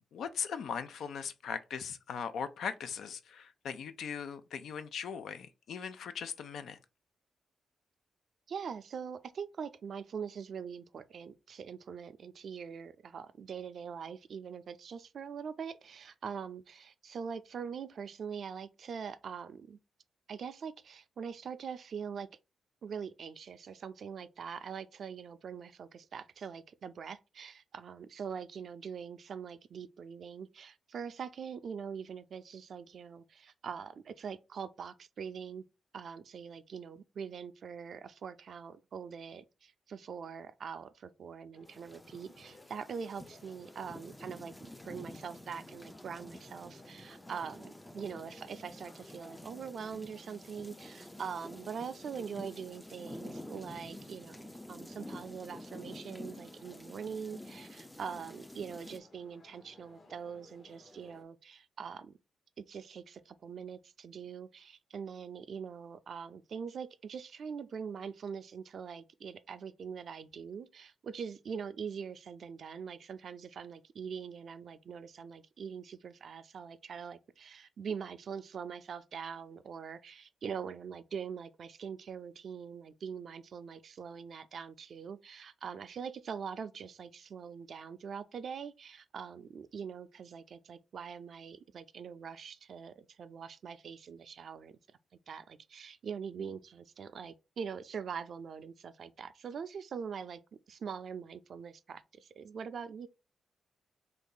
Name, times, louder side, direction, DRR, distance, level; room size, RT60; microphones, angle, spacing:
voice 1, 0.0-6.8, left 7 dB, 80° left, 0.4 m, -39 dB
voice 2, 8.5-19.8 20.3-22.3 22.8-35.6 35.9-62.1 62.6-94.8 95.3-100.4 100.7-103.1, right 6 dB, 65° right, 0.4 m, -43 dB
sound 1, 41.5-61.2, left 2 dB, 45° left, 0.8 m, -59 dB
sound 2, 41.7-59.0, left 1 dB, 10° left, 0.4 m, -49 dB
2.9 x 2.6 x 3.7 m
cardioid pair, 60°, 0 cm